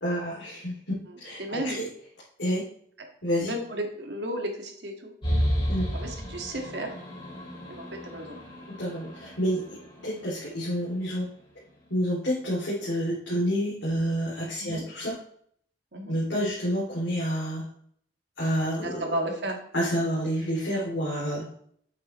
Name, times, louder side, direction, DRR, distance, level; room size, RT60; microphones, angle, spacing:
voice 1, 0.0-0.7 1.2-1.9 2.4-2.6 3.2-3.5 5.7-5.9 8.8-9.8 10.0-11.3 11.9-15.1 16.1-17.6 18.4-19.1 19.7-21.4, equal, 85° left, -6 dB, 2.7 m, -28 dB
voice 2, 1.1-1.8 3.4-5.1 5.9-6.9 7.7-8.4 14.6-14.8 15.9-16.1 18.8-19.6, right 1 dB, 65° right, 2 dB, 1.8 m, -33 dB
sound 1, 5.2-10.8, equal, 25° left, 3.3 m, -32 dB
8.6 x 8.0 x 3.1 m, 0.63 s
head